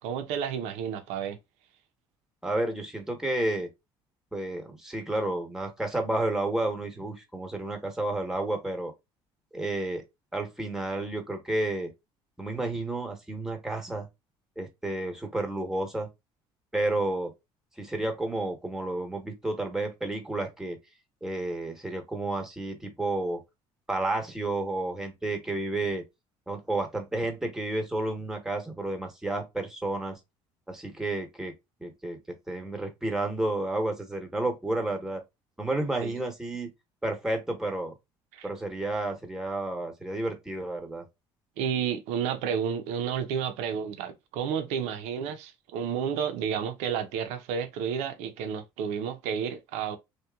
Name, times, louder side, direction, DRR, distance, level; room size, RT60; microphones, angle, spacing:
voice 1, 0.0-1.4 36.0-36.1 38.3-38.5 41.6-50.0, right 8 dB, 80° right, 0.6 m, -31 dB
voice 2, 2.4-3.7 4.3-8.9 9.5-10.0 10.3-11.9 12.4-14.1 14.6-16.1 16.7-17.3 17.8-20.8 21.2-23.4 23.9-26.0 26.5-30.2 30.7-31.5 31.8-35.2 35.6-36.7 37.0-37.9 38.4-41.0, right 2 dB, 5° right, 1.0 m, -31 dB
3.0 x 2.3 x 2.3 m
supercardioid pair, 80°, 11 cm